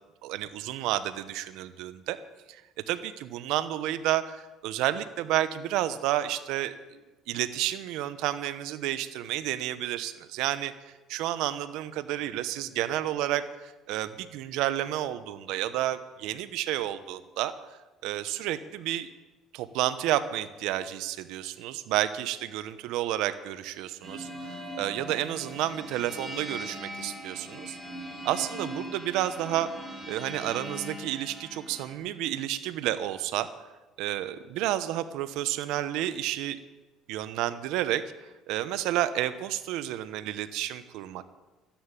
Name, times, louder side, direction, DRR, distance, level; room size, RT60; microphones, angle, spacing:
voice 1, 0.2-2.2 2.5-2.6 2.9-7.0 7.3-10.7 11.1-17.5 18.0-19.1 19.5-27.8 28.2-29.7 30.1-33.5 34.0-36.6 37.1-38.0 38.5-41.2, right 13 dB, 80° right, 12 dB, 0.9 m, -30 dB
sound 1, 24.0-32.0, equal, 20° right, 3.4 m, -40 dB
13.0 x 10.0 x 9.1 m, 1.1 s
cardioid pair, 105°, 0 cm